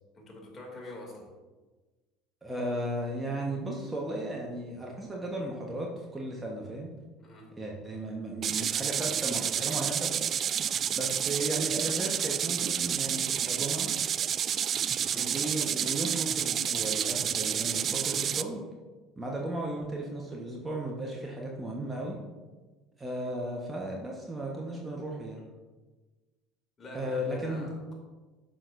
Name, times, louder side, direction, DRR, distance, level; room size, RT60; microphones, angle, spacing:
voice 1, 0.1-1.3 7.2-7.4 15.0-15.3 23.2-23.3 26.8-27.9, left 1 dB, 30° left, -1 dB, 2.7 m, -44 dB
voice 2, 2.4-6.9 7.6-10.1 11.0-13.9 15.1-18.6 19.2-22.2 23.0-25.4 26.9-27.7, right 1 dB, 15° right, -1 dB, 1.3 m, -35 dB
sound 1, 8.4-18.4, right 9 dB, 40° right, 0.3 m, -30 dB
12.0 x 6.3 x 2.7 m, 1.3 s
figure-of-eight pair, 65°, 0 cm